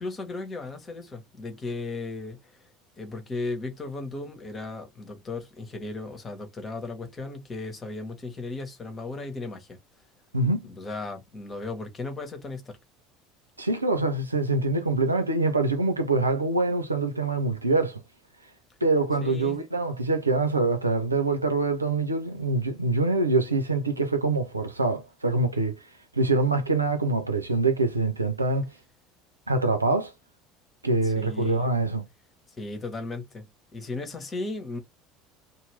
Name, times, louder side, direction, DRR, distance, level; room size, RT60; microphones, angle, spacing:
voice 1, 0.0-2.5 3.0-9.8 10.6-12.8 19.2-19.6 31.0-31.6 32.6-34.8, left 3 dB, 25° left, 1.2 m, -36 dB
voice 2, 13.6-18.0 18.8-25.8 26.1-28.7 29.5-30.1 30.8-32.0, right 3 dB, 85° right, 0.6 m, -25 dB
2.8 x 2.5 x 3.2 m
figure-of-eight pair, 65°, 0 cm